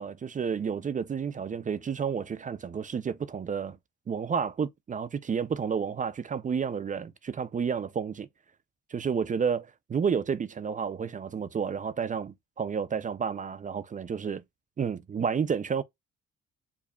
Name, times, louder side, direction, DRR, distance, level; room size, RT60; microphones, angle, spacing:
voice 1, 0.0-3.8 4.1-8.3 8.9-14.4 14.8-15.8, right 6 dB, 25° right, 0.4 m, -31 dB
4.7 x 2.7 x 2.2 m
cardioid pair, 90°, 30 cm